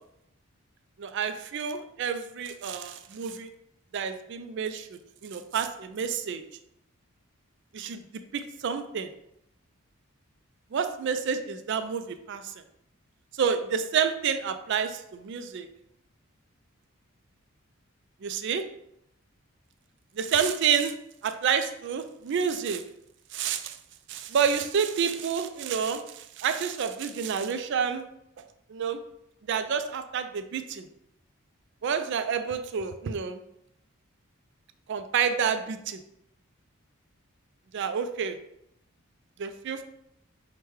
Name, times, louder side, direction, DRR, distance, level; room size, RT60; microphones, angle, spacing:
voice 1, 1.0-3.5 3.9-6.4 7.7-9.1 10.7-12.5 13.3-15.7 18.2-18.6 20.2-20.9 21.2-22.8 23.3-23.8 24.1-28.1 28.4-28.5 28.7-29.0 29.5-30.9 31.8-33.4 34.9-36.0 37.7-38.4 39.4-39.8, right 7 dB, 55° right, 9 dB, 0.3 m, -29 dB
5.9 x 2.2 x 3.2 m, 0.79 s
head